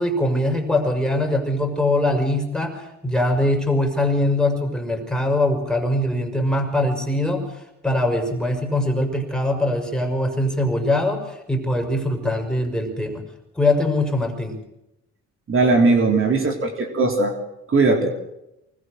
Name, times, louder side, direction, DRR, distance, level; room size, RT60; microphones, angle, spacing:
voice 1, 0.0-7.4 7.8-13.2 13.6-14.6, left 1 dB, ahead, 3 dB, 5.7 m, -22 dB
voice 2, 15.5-17.3 17.7-18.1, right 3 dB, 45° right, 3 dB, 3.6 m, -18 dB
24.5 x 20.0 x 6.6 m, 0.90 s
cardioid pair, 90°, 30 cm